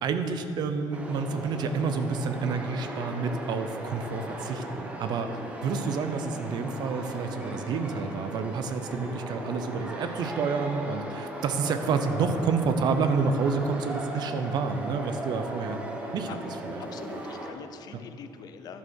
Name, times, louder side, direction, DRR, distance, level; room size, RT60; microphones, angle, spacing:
voice 1, 0.0-15.8 16.1-16.3 16.6-16.8, right 5 dB, 55° right, 9 dB, 0.7 m, -29 dB
sound 1, 0.9-17.5, right 1 dB, 15° right, 1.2 m, -37 dB
voice 2, 16.8-18.8, left 7 dB, 50° left, 9 dB, 0.7 m, -43 dB
11.5 x 6.8 x 6.4 m, 2.7 s
cardioid pair, 145°, 9 cm